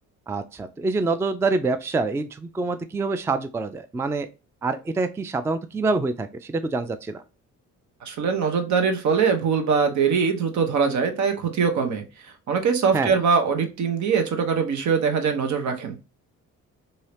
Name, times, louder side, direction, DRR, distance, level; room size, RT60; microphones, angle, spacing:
voice 1, 0.3-4.3 4.6-7.2 12.9-13.2, right 3 dB, 10° right, 9 dB, 0.3 m, -26 dB
voice 2, 8.0-12.0 12.5-16.0, right 6 dB, 70° right, 5 dB, 0.9 m, -22 dB
2.8 x 2.7 x 3.3 m, 0.29 s
cardioid pair, 90°, 30 cm